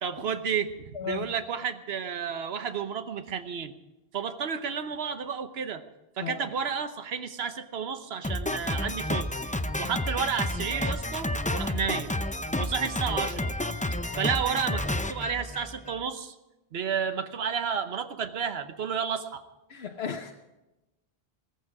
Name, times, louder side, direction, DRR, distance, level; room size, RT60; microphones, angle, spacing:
voice 1, 0.0-3.7 4.1-5.8 6.2-9.3 9.8-12.1 12.6-13.5 14.2-14.8 15.1-16.3 16.7-19.4, right 7 dB, 75° right, 9 dB, 1.2 m, -31 dB
voice 2, 0.9-1.3 6.2-6.4 19.7-20.3, left 7 dB, 80° left, 4 dB, 1.1 m, -35 dB
Drum kit, 8.2-16.0, left 1 dB, 10° left, 0.4 m, -30 dB
17.0 x 15.0 x 4.8 m, 1.0 s
omnidirectional pair, 1.1 m